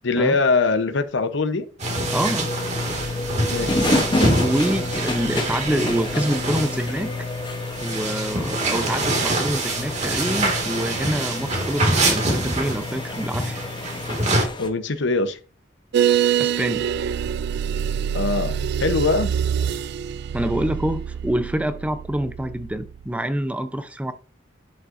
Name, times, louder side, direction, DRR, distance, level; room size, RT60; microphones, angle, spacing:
voice 1, 0.0-1.7 3.5-3.9 14.6-15.4 18.1-19.3, left 3 dB, 65° left, 0.8 m, -22 dB
sound 1, 1.8-14.4, right 1 dB, 40° right, 2.0 m, -25 dB
sound 2, 1.9-14.7, left 1 dB, 25° left, 0.8 m, -30 dB
voice 2, 2.1-2.5 4.3-7.1 7.8-13.6 16.4-16.9 20.3-24.1, right 1 dB, 5° right, 0.6 m, -26 dB
sound 3, 15.9-23.1, right 8 dB, 60° right, 0.3 m, -25 dB
11.0 x 5.5 x 2.6 m
head